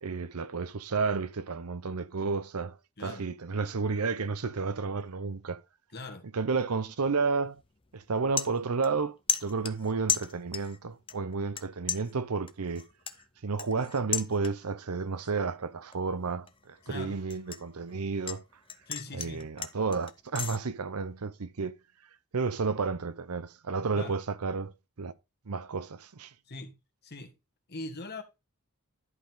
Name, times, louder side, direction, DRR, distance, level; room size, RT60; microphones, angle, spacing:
voice 1, 0.0-5.6 6.3-7.6 7.9-12.8 13.4-18.4 19.1-21.8 22.3-24.7 25.0-25.1 25.5-26.3, right 4 dB, 85° right, 0.7 m, -31 dB
voice 2, 5.9-6.2 16.8-17.2 18.9-19.5 23.9-24.2 26.5-26.7 27.0-27.3 27.7-28.2, left 2 dB, 45° left, 1.5 m, -41 dB
sound 1, 7.4-7.7 8.0-9.0 9.3-10.8 11.1-11.6 11.9-14.8 15.2-15.5 15.9-18.4 18.7-20.6, left 7 dB, 25° left, 0.7 m, -35 dB
11.0 x 5.2 x 3.8 m
head